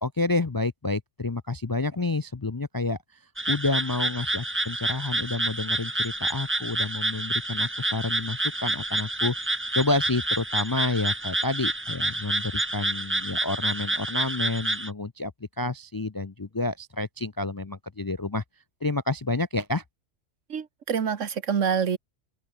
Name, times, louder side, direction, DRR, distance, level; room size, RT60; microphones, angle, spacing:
voice 1, 0.0-3.2 3.5-9.3 9.7-15.3 15.6-18.4 18.8-19.8, left 2 dB, 30° left, 0.4 m, -29 dB
sound 1, 3.4-14.9, right 1 dB, 10° right, 1.1 m, -28 dB
voice 2, 20.5-22.0, right 7 dB, 75° right, 1.6 m, -26 dB
open air
omnidirectional pair, 1.3 m